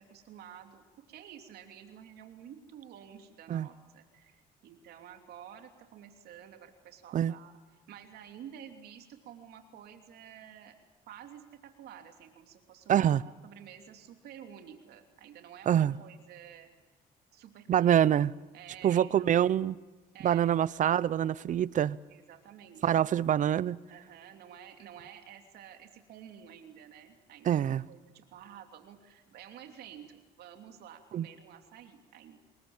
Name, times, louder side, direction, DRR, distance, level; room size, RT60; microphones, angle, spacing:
voice 1, 0.0-10.8 11.1-16.7 17.3-18.1 18.5-19.6 20.1-20.5 22.1-23.1 23.9-32.4, right 9 dB, 70° right, 3.0 m, -51 dB
voice 2, 12.9-13.2 15.7-15.9 17.7-18.3 18.8-19.8 20.2-22.0 22.8-23.8 27.5-27.8 31.1-31.3, right 10 dB, 50° right, 0.7 m, -25 dB
28.0 x 22.0 x 7.3 m
cardioid pair, 110°, 17 cm